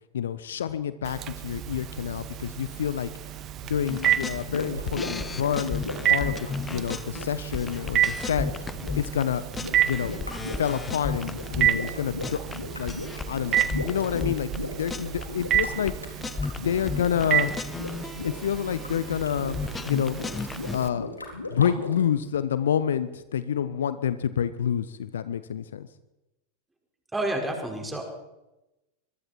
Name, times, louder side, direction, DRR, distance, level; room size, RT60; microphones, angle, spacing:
voice 1, 0.1-3.1 3.6-8.5 9.0-9.4 9.8-10.2 10.6-13.0 13.2-16.2 16.5-17.5 18.2-19.6 19.8-20.2 20.7-21.1 21.5-25.9, left 9 dB, 65° left, 14 dB, 1.0 m, -28 dB
Telephone, 1.0-20.9, right 11 dB, 30° right, 1.5 m, -31 dB
sound 1, 3.9-9.2 9.5-11.9 12.2-14.6 14.9-15.2 15.5-20.8, left 4 dB, 15° left, 1.0 m, -35 dB
sound 2, 4.3-22.0, left 2 dB, 80° left, 4.2 m, -38 dB
voice 2, 27.1-28.0, right 1 dB, 10° right, 2 dB, 5.5 m, -29 dB
25.5 x 22.5 x 4.6 m, 0.97 s
figure-of-eight pair, 90°, 0 cm